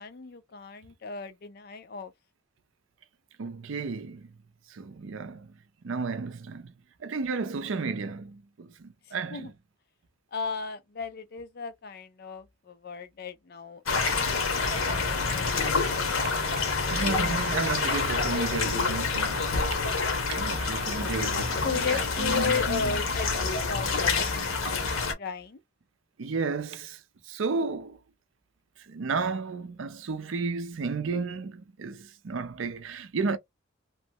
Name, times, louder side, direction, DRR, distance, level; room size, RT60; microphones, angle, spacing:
voice 1, 0.0-2.1 9.3-9.5 10.3-15.0 21.6-25.6, left 5 dB, 50° left, 0.4 m, -35 dB
voice 2, 3.4-4.3 4.7-5.5 5.8-6.7 7.0-9.5 16.0-16.2 16.9-19.5 20.3-23.0 26.2-28.0 28.8-33.4, right 4 dB, 70° right, 0.5 m, -33 dB
sound 1, 13.9-25.1, left 4 dB, 85° left, 0.9 m, -27 dB
3.0 x 2.2 x 2.7 m
head